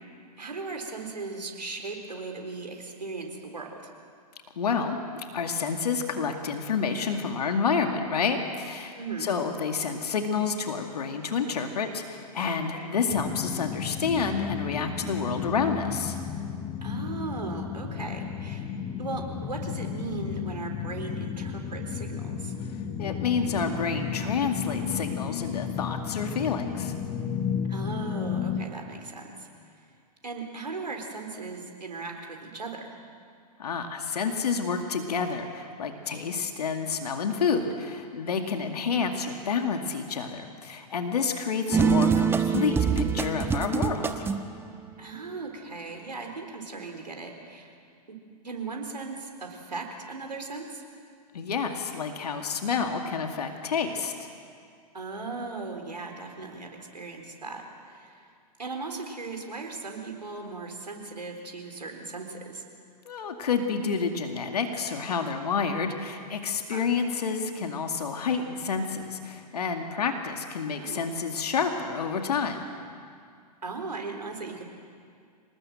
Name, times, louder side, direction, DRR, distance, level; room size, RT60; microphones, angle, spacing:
voice 1, 0.4-3.9 9.0-9.3 12.7-12.9 16.8-18.7 19.0-22.5 27.7-29.5 30.2-33.0 41.7-42.1 45.0-47.7 48.1-48.2 48.4-50.8 54.9-58.2 58.6-62.6 66.7-66.9 70.8-71.1 73.6-74.8, right 3 dB, 85° right, 3 dB, 4.0 m, -38 dB
voice 2, 4.6-16.2 23.0-26.9 33.6-44.3 51.3-54.3 63.1-72.7, left 5 dB, 70° left, 5 dB, 2.3 m, -29 dB
sound 1, 13.1-28.7, left 7 dB, 30° left, 1.6 m, -33 dB
sudden run, 41.7-44.5, right 6 dB, 10° right, 1.1 m, -24 dB
26.5 x 19.5 x 7.7 m, 2.2 s
figure-of-eight pair, 110°, 21 cm